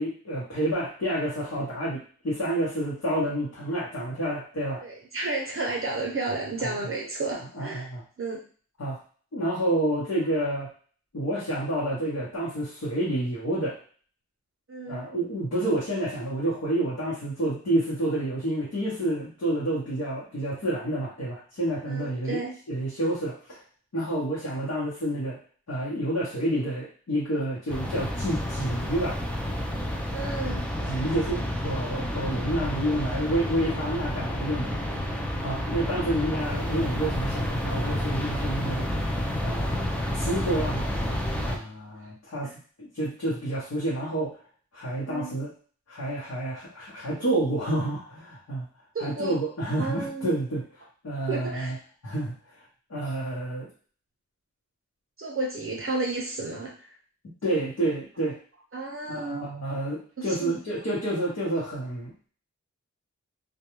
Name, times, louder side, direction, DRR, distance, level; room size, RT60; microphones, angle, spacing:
voice 1, 0.0-4.8 6.6-6.7 7.5-8.0 8.8-9.0 9.3-10.7 11.1-13.7 14.9-23.6 23.9-25.4 25.7-29.2 30.9-34.7 35.4-38.9 39.4-39.9 40.1-40.9 41.5-42.5 42.8-44.3 44.7-45.5 45.9-48.6 49.0-50.6 51.0-51.7 52.0-52.3 52.9-53.7 57.4-58.4 59.1-62.3, right 1 dB, 60° left, -8 dB, 0.9 m, -29 dB
voice 2, 4.8-7.9 8.2-8.4 14.7-15.0 21.9-22.5 30.1-30.6 42.4-42.5 45.1-45.4 48.9-49.4 49.8-50.3 51.3-51.7 55.2-56.9 58.7-59.5 60.2-60.6, right 3 dB, 45° right, -1 dB, 0.6 m, -32 dB
sound 1, 27.7-41.6, left 1 dB, 5° left, 0.4 m, -30 dB
2.3 x 2.2 x 3.0 m, 0.43 s
wide cardioid pair, 80°, 29 cm